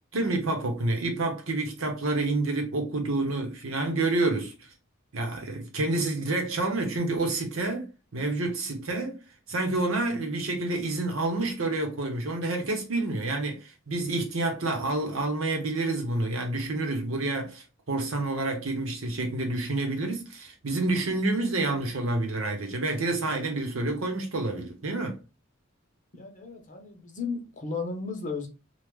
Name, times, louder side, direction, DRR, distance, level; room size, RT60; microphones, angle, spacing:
voice 1, 0.1-4.7 5.1-7.9 8.1-9.2 9.5-25.2, right 2 dB, 85° right, 1.0 m, -28 dB
voice 2, 26.1-28.5, left 4 dB, 40° left, 0.9 m, -34 dB
3.1 x 2.3 x 3.5 m
head